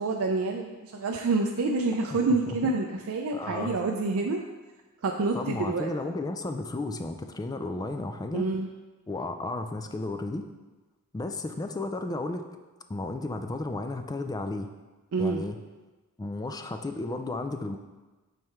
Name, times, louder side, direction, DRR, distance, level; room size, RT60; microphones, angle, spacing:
voice 1, 0.0-4.4 5.0-5.9 8.3-8.7 15.1-15.4, right 3 dB, 70° right, 1 dB, 0.4 m, -27 dB
voice 2, 3.3-3.8 5.3-8.5 9.1-10.5 11.1-12.5 12.9-14.7 15.2-15.6 16.2-17.8, left 2 dB, 15° left, 7 dB, 0.3 m, -33 dB
7.4 x 3.2 x 4.4 m, 1.2 s
head